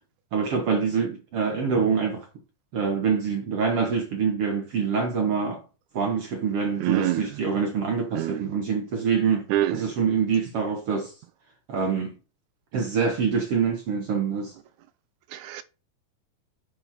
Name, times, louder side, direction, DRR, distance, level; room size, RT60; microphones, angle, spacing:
voice 1, 0.3-2.3 2.7-5.6 5.9-11.1 11.7-12.1 12.7-14.5, right 6 dB, 55° right, 1.8 m, -25 dB
voice 2, 6.8-7.4 8.1-8.5 9.5-9.9 15.3-15.6, right 14 dB, 80° right, 1.7 m, -26 dB
9.7 x 4.9 x 4.2 m
omnidirectional pair, 3.9 m